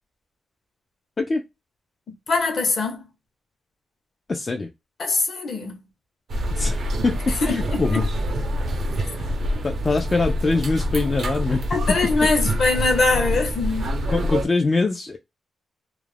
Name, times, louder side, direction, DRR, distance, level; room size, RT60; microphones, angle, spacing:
voice 1, 2.1-3.1 5.0-5.8 7.4-8.1 9.4-9.6 11.7-13.9, left 3 dB, 55° left, 0.8 m, -23 dB
voice 2, 4.3-4.7 6.5-6.8 7.0-8.1 9.1-12.3 14.1-15.2, left 3 dB, 30° left, 0.3 m, -24 dB
sound 1, 6.3-14.5, equal, 60° right, 0.6 m, -26 dB
2.3 x 2.0 x 3.2 m
cardioid pair, 110°, 0 cm